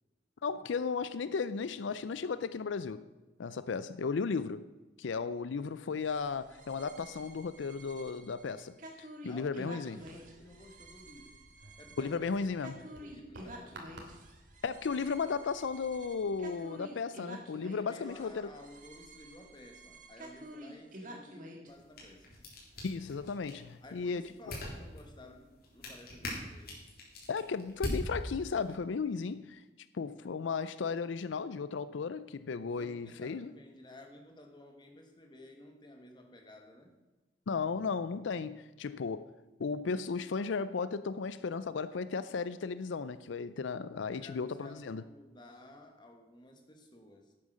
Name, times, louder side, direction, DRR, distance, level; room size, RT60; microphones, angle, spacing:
voice 1, 0.4-3.0 3.4-4.7 5.0-10.0 12.0-12.7 14.6-18.5 22.8-24.2 27.3-29.6 29.9-33.5 37.5-39.2 39.6-45.0, left 5 dB, 85° left, 0.5 m, -35 dB
sound 1, 6.0-21.7, right 1 dB, 45° right, 1.9 m, -50 dB
voice 2, 9.3-11.4 11.8-13.9 17.7-22.3 23.8-26.8 32.8-36.9 44.0-47.3, left 1 dB, 25° left, 1.7 m, -53 dB
sound 2, 10.0-16.5, right 1 dB, 70° right, 2.6 m, -56 dB
sound 3, 21.7-28.8, left 1 dB, 55° left, 3.7 m, -43 dB
11.5 x 8.7 x 6.3 m
head